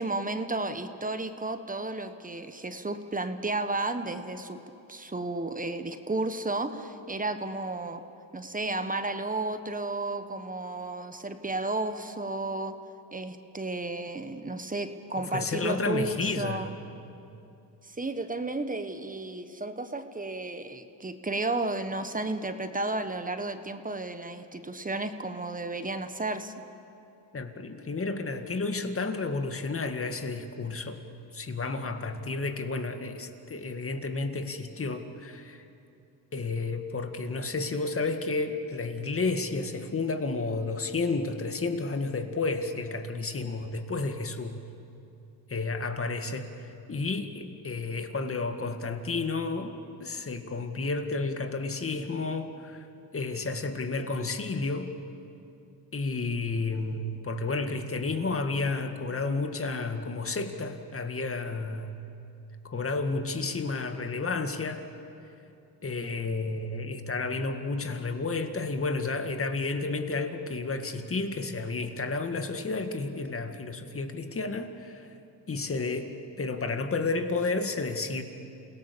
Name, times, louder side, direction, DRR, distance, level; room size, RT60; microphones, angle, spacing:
voice 1, 0.0-4.6 4.9-8.0 8.3-12.7 13.1-16.7 17.8-26.5, right 2 dB, 20° right, 9 dB, 1.3 m, -33 dB
voice 2, 15.2-16.7 27.3-31.0 31.3-35.6 36.3-44.6 45.5-52.9 53.1-54.9 55.9-61.9 62.6-64.8 65.8-75.1 75.5-76.1 76.4-78.2, left 3 dB, 30° left, 7 dB, 2.0 m, -31 dB
28.5 x 17.5 x 7.0 m, 2.7 s
supercardioid pair, 80°, 46 cm